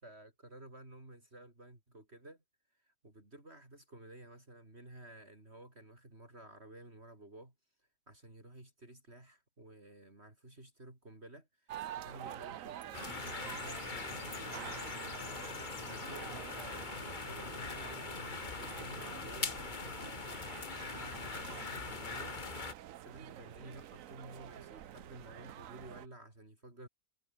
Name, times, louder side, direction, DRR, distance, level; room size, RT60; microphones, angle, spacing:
voice 1, 0.0-2.4 2.7-7.5 8.1-15.2 15.6-20.5 20.8-22.4 22.8-26.9, right 1 dB, 50° right, 5.9 m, -53 dB
sound 1, 11.7-26.1, right 12 dB, 75° right, 1.1 m, -48 dB
sound 2, 12.9-22.7, left 4 dB, 35° left, 1.4 m, -42 dB
omnidirectional pair, 1.5 m